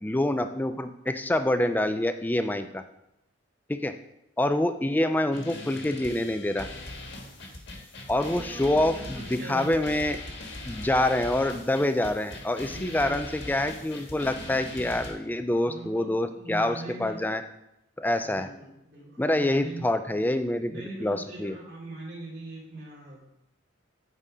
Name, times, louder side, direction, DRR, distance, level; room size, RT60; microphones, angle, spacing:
voice 1, 0.0-2.8 3.7-3.9 4.4-6.7 8.1-10.2 10.7-17.4 18.0-18.5 19.2-21.6, left 1 dB, 10° left, 9 dB, 0.3 m, -26 dB
sound 1, 5.3-15.1, left 2 dB, 65° left, 1.4 m, -41 dB
voice 2, 8.3-9.9 12.7-13.3 15.6-17.2 18.2-20.3 20.6-23.2, right 2 dB, 55° right, -6 dB, 2.7 m, -41 dB
8.8 x 4.2 x 4.9 m, 0.84 s
head